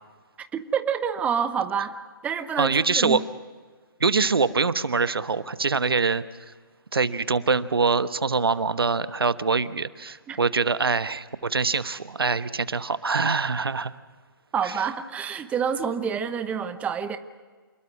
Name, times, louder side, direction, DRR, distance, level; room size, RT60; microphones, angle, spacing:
voice 1, 0.5-1.9 2.2-3.2 10.3-10.4 14.5-17.2, right 7 dB, 10° right, 9 dB, 1.0 m, -27 dB
voice 2, 2.6-3.2 4.0-6.2 6.9-13.9 14.6-14.7, right 4 dB, 80° right, 14 dB, 1.1 m, -24 dB
27.5 x 20.5 x 6.2 m, 1.5 s
figure-of-eight pair, 140°, 12 cm